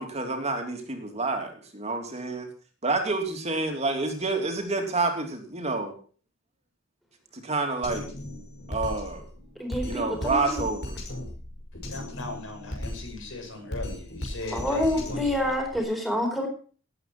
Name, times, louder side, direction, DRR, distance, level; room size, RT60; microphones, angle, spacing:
voice 1, 0.0-2.5 2.8-5.9 7.3-8.1 8.7-9.3 9.8-11.0, right 3 dB, 35° right, 3 dB, 3.1 m, -28 dB
Drum kit, 7.8-15.8, left 1 dB, 60° left, 5.5 m, -37 dB
voice 2, 9.6-10.6 14.5-16.5, left 1 dB, ahead, 2 dB, 4.4 m, -27 dB
voice 3, 11.9-15.5, left 2 dB, 75° left, 4 dB, 6.4 m, -39 dB
18.5 x 8.9 x 6.0 m, 0.42 s
head